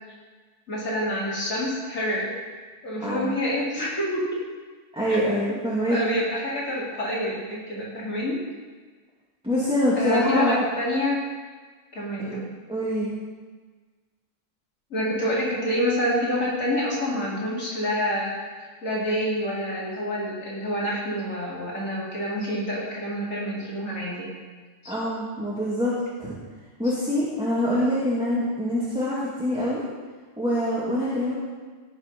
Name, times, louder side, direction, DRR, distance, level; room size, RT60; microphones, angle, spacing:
voice 1, 0.7-4.4 5.1-5.2 5.9-8.4 9.9-11.2 11.9-12.5 14.9-24.3 24.8-24.9, left 1 dB, 75° left, -7 dB, 3.2 m, -27 dB
voice 2, 3.0-3.3 4.9-6.0 9.4-10.6 12.3-12.4 12.7-13.1 24.9-25.9 26.2-26.3 26.8-29.8 30.4-31.3, equal, 5° right, -8 dB, 2.3 m, -25 dB
18.0 x 6.4 x 5.3 m, 1.4 s
omnidirectional pair, 1.4 m